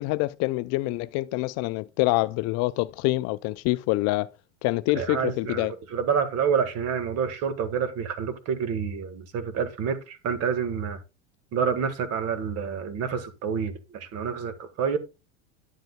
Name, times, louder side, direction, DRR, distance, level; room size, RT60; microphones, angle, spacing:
voice 1, 0.0-4.3 4.6-5.7, left 20 dB, 50° left, 0.5 m, -26 dB
voice 2, 4.9-11.0 11.5-15.0, right 6 dB, 45° right, 1.6 m, -28 dB
10.5 x 7.7 x 2.2 m
hypercardioid pair, 100°, 35 cm